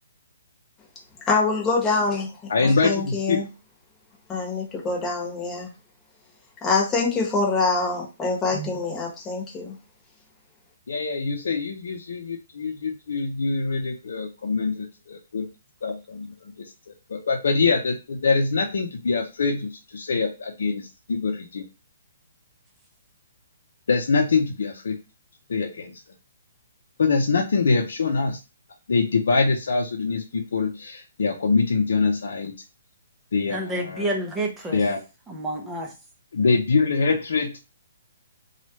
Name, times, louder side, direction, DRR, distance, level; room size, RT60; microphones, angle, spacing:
voice 1, 1.3-3.5 4.3-5.7 6.6-9.7, left 3 dB, 15° left, -2 dB, 1.1 m, -25 dB
voice 2, 2.5-3.4 10.9-15.5 15.8-16.3 16.9-21.6 23.9-25.0 25.5-25.9 27.0-28.4 28.9-32.5 33.3-34.1 34.7-35.0 36.3-37.5, left 4 dB, 75° left, 0 dB, 0.6 m, -24 dB
voice 3, 33.5-34.8 35.3-35.9, right 1 dB, 10° right, 1 dB, 0.6 m, -29 dB
3.0 x 2.4 x 3.0 m, 0.29 s
hypercardioid pair, 155°, 0 cm